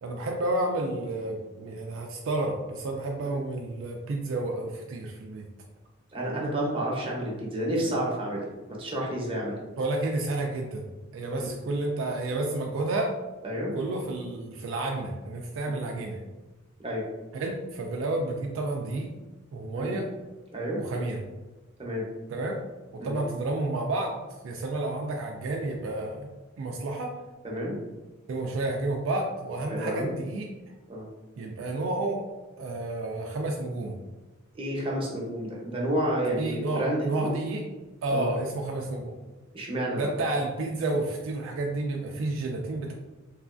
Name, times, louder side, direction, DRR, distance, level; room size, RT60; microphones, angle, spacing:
voice 1, 0.0-5.5 9.8-10.9 11.1-13.1 13.7-16.2 17.3-19.1 19.5-20.1 20.8-21.2 22.3-22.6 22.9-24.1 24.4-26.3 26.6-27.1 28.3-30.5 31.4-32.2 32.6-33.9 36.4-37.6 38.0-39.1 39.9-42.9, right 2 dB, 70° right, 1 dB, 0.3 m, -30 dB
voice 2, 6.1-9.6 11.4-11.5 13.4-13.7 15.7-15.8 16.8-17.0 19.7-20.0 20.5-20.8 21.8-22.0 23.0-23.2 27.4-27.8 29.7-30.1 30.9-31.1 34.5-37.3 38.1-38.3 39.5-40.1, right 1 dB, 25° right, -3 dB, 0.7 m, -30 dB
3.0 x 2.3 x 2.4 m, 1.2 s
head